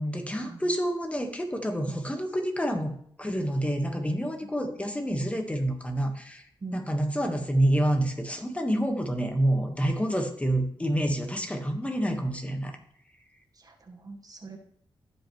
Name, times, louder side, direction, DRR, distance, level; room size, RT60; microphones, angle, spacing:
voice 1, 0.0-6.4 6.7-12.8, right 1 dB, 15° left, 4 dB, 1.4 m, -28 dB
voice 2, 13.6-14.6, right 3 dB, 45° right, 3 dB, 1.4 m, -42 dB
15.5 x 5.3 x 3.1 m, 0.64 s
cardioid pair, 70°, 9 cm